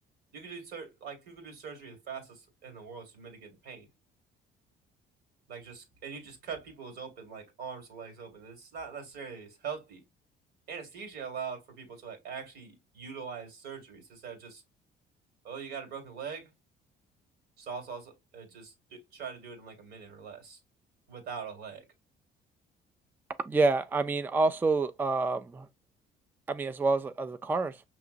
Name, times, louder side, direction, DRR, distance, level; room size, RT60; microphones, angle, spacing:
voice 1, 0.3-3.9 5.5-10.0 10.7-14.6 15.4-16.5 17.6-20.6 21.1-21.8, right 6 dB, 75° right, 1.9 m, -42 dB
voice 2, 23.5-25.7 26.5-27.8, right 3 dB, 10° right, 0.3 m, -27 dB
5.9 x 2.9 x 2.5 m
cardioid pair, 110°, 17 cm